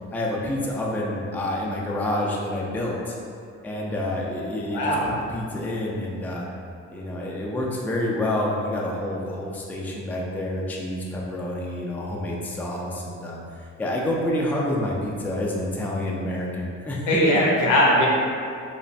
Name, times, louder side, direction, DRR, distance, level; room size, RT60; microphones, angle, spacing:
voice 1, 0.1-3.2 3.6-6.5 6.9-17.1, left 1 dB, 5° left, -3 dB, 0.3 m, -28 dB
voice 2, 4.7-5.2 17.1-18.1, equal, 85° left, -3 dB, 0.7 m, -20 dB
3.0 x 2.1 x 2.6 m, 2.4 s
cardioid pair, 90°, 30 cm